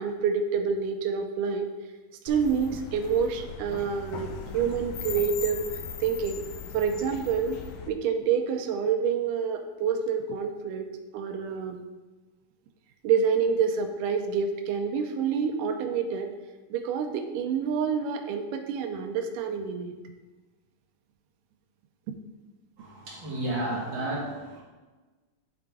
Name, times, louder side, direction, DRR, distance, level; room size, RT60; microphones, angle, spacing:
voice 1, 0.0-1.7 2.3-5.7 6.0-6.4 6.7-7.6 7.9-10.9 11.1-11.8 13.0-16.3 16.7-19.9 22.1-22.2, right 6 dB, 85° right, 4 dB, 2.2 m, -27 dB
sound 1, 2.3-7.9, left 7 dB, 80° left, 1.9 m, -39 dB
voice 2, 22.8-24.6, right 1 dB, 45° right, -6 dB, 1.9 m, -32 dB
10.5 x 3.8 x 3.5 m, 1.2 s
omnidirectional pair, 3.7 m